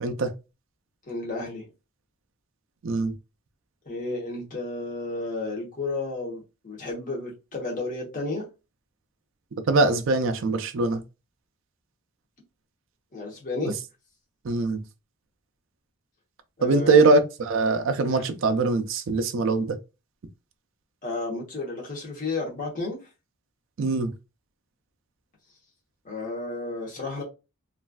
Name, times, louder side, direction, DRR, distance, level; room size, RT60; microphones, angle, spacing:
voice 1, 1.1-1.7 3.8-8.5 13.1-13.7 16.6-17.1 18.1-18.3 21.0-23.0 26.0-27.2, left 2 dB, 35° left, 1.0 m, -32 dB
voice 2, 9.7-11.0 13.6-13.7 14.4-14.8 16.6-19.8 23.8-24.1, right 3 dB, 60° right, 0.4 m, -22 dB
3.1 x 2.4 x 2.3 m
head